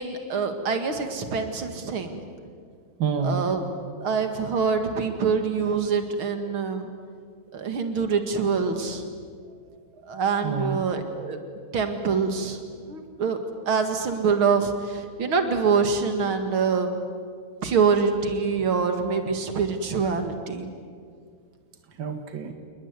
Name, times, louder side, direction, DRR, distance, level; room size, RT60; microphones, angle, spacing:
voice 1, 0.0-2.2 3.2-3.6 4.0-6.9 7.5-9.0 10.1-11.4 11.7-12.6 12.9-13.4 13.7-17.0 17.6-20.7, right 5 dB, 85° right, 7 dB, 2.8 m, -25 dB
voice 2, 3.0-3.4 9.5-9.8 10.4-10.9 21.9-22.5, right 6 dB, 65° right, 6 dB, 2.6 m, -29 dB
28.5 x 20.5 x 9.7 m, 2.1 s
omnidirectional pair, 2.2 m